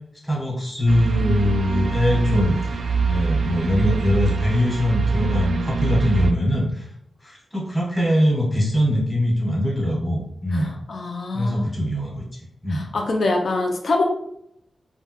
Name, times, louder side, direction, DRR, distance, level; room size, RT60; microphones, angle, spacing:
voice 1, 0.2-6.8 7.2-10.7 11.3-12.2 12.6-12.9, left 1 dB, 10° left, -4 dB, 1.1 m, -22 dB
sound 1, 0.9-6.3, right 5 dB, 75° right, 0.4 m, -24 dB
voice 2, 10.5-11.6 12.7-14.0, left 2 dB, 55° left, 1 dB, 0.5 m, -24 dB
3.2 x 2.4 x 2.9 m, 0.74 s
wide cardioid pair, 145°, 0 cm